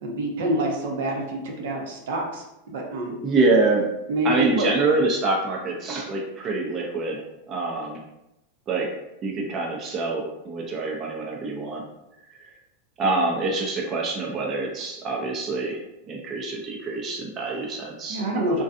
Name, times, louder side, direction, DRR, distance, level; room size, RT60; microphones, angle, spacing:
voice 1, 0.0-3.1 4.1-4.7 18.1-18.6, right 1 dB, 75° right, 1 dB, 0.6 m, -27 dB
voice 2, 3.1-3.8 4.2-8.0 8.7-8.9 9.2-11.8 12.3-12.5 13.0-15.8 16.1-18.2 18.5-18.6, right 3 dB, 30° right, -1 dB, 0.4 m, -25 dB
2.5 x 2.2 x 2.5 m, 0.89 s
supercardioid pair, 130°, 0 cm